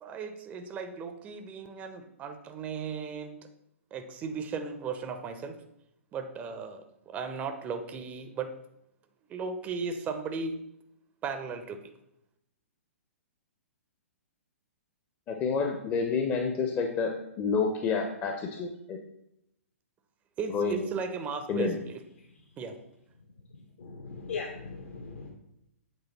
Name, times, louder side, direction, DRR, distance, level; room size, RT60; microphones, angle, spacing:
voice 1, 0.0-3.4 3.9-5.6 6.1-8.5 9.3-10.7 11.2-11.8 20.4-22.0 22.6-22.8, right 5 dB, 20° right, 7 dB, 0.5 m, -36 dB
voice 2, 15.3-19.0 20.5-20.9 21.5-21.8, left 5 dB, 25° left, 3 dB, 0.6 m, -29 dB
voice 3, 23.8-25.3, left 4 dB, 65° left, 2 dB, 0.9 m, -39 dB
8.1 x 3.2 x 4.0 m, 0.80 s
figure-of-eight pair, 115°, 8 cm